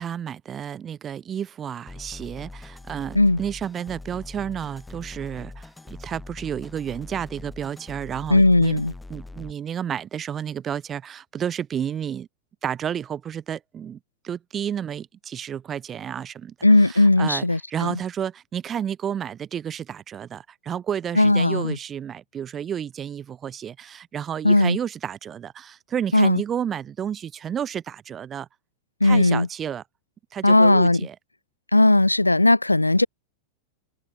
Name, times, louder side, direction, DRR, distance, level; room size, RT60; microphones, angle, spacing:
voice 1, 0.0-8.8 9.1-12.3 12.6-14.0 14.2-16.5 16.8-28.5 29.0-29.8 30.3-31.1, right 9 dB, 25° right, 1.5 m, -31 dB
sound 1, 1.9-9.5, left 2 dB, 10° left, 0.8 m, -42 dB
voice 2, 8.3-8.9 16.6-17.9 21.2-21.8 24.4-24.8 26.1-26.4 29.0-29.5 30.4-31.0 31.7-33.1, left 2 dB, 85° left, 0.3 m, -17 dB
open air
figure-of-eight pair, 90°, 0 cm